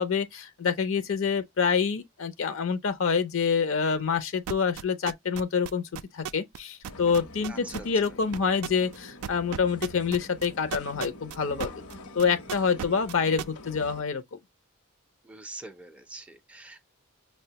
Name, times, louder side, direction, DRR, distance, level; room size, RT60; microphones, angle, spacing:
voice 1, 0.0-5.8 6.1-11.8 12.1-14.2, left 6 dB, 60° left, 0.5 m, -27 dB
sound 1, 4.5-6.6 6.8-11.9 12.2-13.4, right 9 dB, 85° right, 0.3 m, -35 dB
sound 2, 6.8-14.0, left 1 dB, 85° left, 0.9 m, -46 dB
voice 2, 7.5-7.9 12.8-13.0 15.2-16.8, right 2 dB, 5° right, 0.4 m, -44 dB
6.0 x 2.1 x 2.8 m
head